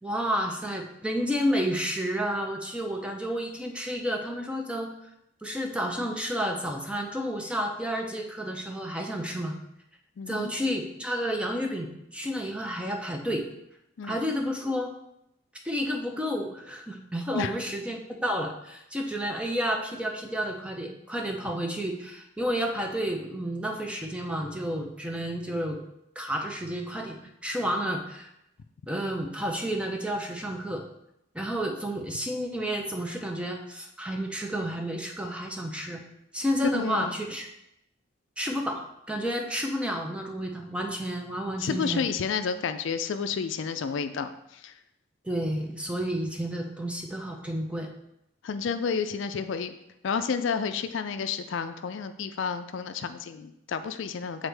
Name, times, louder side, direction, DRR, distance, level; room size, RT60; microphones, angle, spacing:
voice 1, 0.0-4.9 5.4-9.5 10.3-13.4 14.0-14.9 15.6-25.8 26.2-28.3 28.9-30.8 31.3-36.0 36.3-37.5 38.4-42.1 45.2-47.9, equal, 5° right, 2 dB, 0.5 m, -31 dB
voice 2, 10.2-10.5 14.0-14.2 17.3-17.5 36.7-37.2 41.6-44.7 48.4-49.8 50.0-54.5, left 6 dB, 65° left, 9 dB, 0.4 m, -30 dB
7.9 x 4.0 x 3.4 m, 0.83 s
head